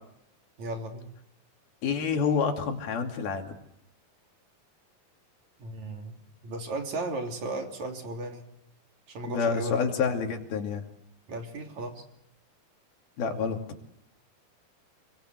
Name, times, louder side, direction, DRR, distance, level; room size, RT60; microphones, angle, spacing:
voice 1, 0.6-1.1 5.6-8.5 9.1-9.8 11.3-12.0, right 2 dB, 50° right, 3 dB, 4.2 m, -35 dB
voice 2, 1.8-3.5 9.2-10.8 13.2-13.6, left 5 dB, 80° left, 4 dB, 4.6 m, -28 dB
29.0 x 23.0 x 8.0 m, 0.76 s
omnidirectional pair, 4.3 m